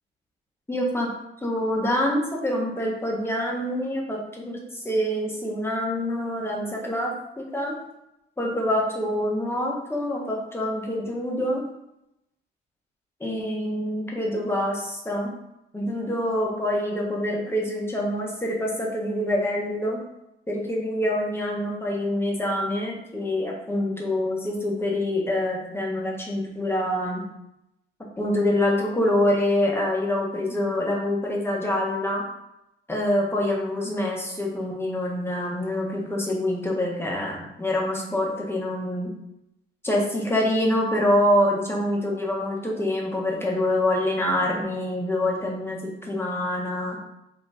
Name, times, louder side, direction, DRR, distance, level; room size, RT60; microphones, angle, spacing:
voice 1, 0.7-1.1 1.4-7.7 8.4-11.7 13.2-15.3 15.7-20.0 20.5-27.2 28.2-32.2 32.9-39.1 39.8-47.0, left 1 dB, 10° left, -2 dB, 1.1 m, -26 dB
4.0 x 3.0 x 3.4 m, 0.85 s
cardioid pair, 90°, 20 cm